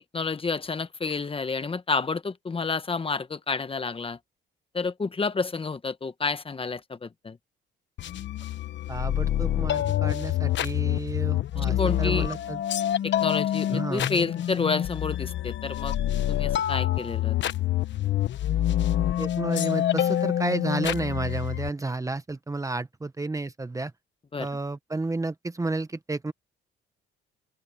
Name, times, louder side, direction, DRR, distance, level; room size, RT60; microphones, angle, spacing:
voice 1, 0.1-4.2 4.7-7.4 11.8-12.3 13.0-15.9 16.3-17.4 24.3-24.5, left 4 dB, 25° left, 1.2 m, -29 dB
sound 1, 8.0-21.7, left 12 dB, 65° left, 1.0 m, -27 dB
voice 2, 8.9-12.6 13.7-14.1 19.2-23.9 24.4-26.3, right 2 dB, 15° right, 1.0 m, -31 dB
open air
cardioid pair, 90°, 20 cm